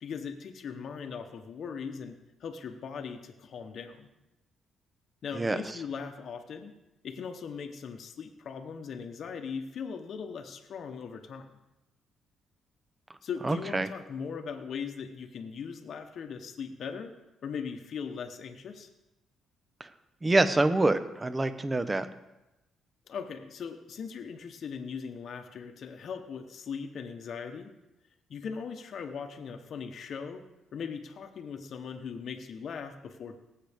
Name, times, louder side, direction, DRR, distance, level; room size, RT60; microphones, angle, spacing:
voice 1, 0.0-4.1 5.2-6.7 7.0-11.5 13.2-17.1 17.4-18.9 23.1-27.7 28.3-30.4 30.7-33.4, left 6 dB, 60° left, 5 dB, 1.0 m, -39 dB
voice 2, 13.4-13.9 19.8-19.9 20.2-22.1, right 2 dB, 20° right, 11 dB, 0.9 m, -26 dB
18.5 x 7.7 x 3.6 m, 0.94 s
cardioid pair, 90°, 0 cm